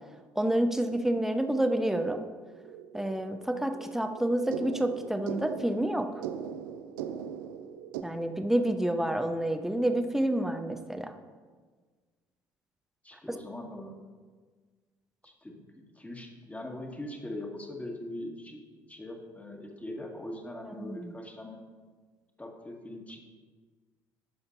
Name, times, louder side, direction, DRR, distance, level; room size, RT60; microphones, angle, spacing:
voice 1, 0.4-2.2 2.9-6.1 8.0-11.1 13.3-13.4 20.6-21.1, right 1 dB, 5° right, 6 dB, 1.0 m, -29 dB
sound 1, 1.5-8.0, right 8 dB, 70° right, 0.6 m, -40 dB
voice 2, 13.0-14.0 15.2-15.6 16.0-21.6 22.4-23.2, left 1 dB, 15° left, 1 dB, 2.1 m, -41 dB
19.0 x 7.1 x 2.7 m, 1.5 s
figure-of-eight pair, 55°, 11 cm